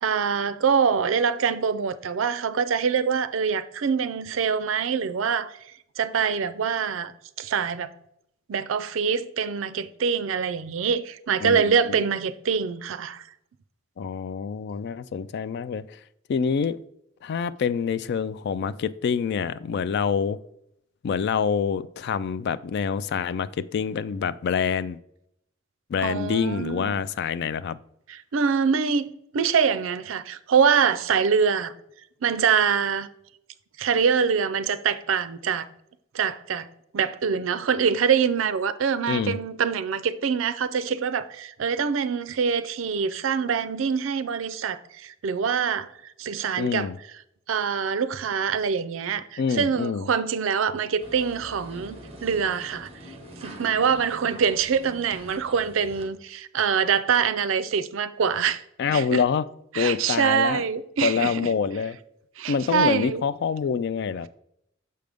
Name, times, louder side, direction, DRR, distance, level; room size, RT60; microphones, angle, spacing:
voice 1, 0.0-5.5 6.0-7.1 7.4-7.9 8.5-13.2 26.0-27.0 28.1-29.1 29.3-31.7 32.2-33.1 33.8-35.7 36.1-36.7 36.9-45.9 46.2-46.9 47.5-52.0 52.2-52.9 53.4-58.6 58.9-59.2 59.7-61.5 62.4-63.2, right 6 dB, 70° right, 0.4 m, -24 dB
voice 2, 11.4-12.0 14.0-16.0 16.3-16.8 17.2-20.4 21.0-25.0 25.9-27.8 39.1-39.4 46.6-47.0 49.4-50.1 58.8-59.5 59.8-60.6 61.0-62.0 62.5-64.3, left 6 dB, 55° left, 0.3 m, -26 dB
sound 1, 51.0-56.0, equal, 30° right, 1.2 m, -44 dB
6.6 x 5.1 x 3.4 m
head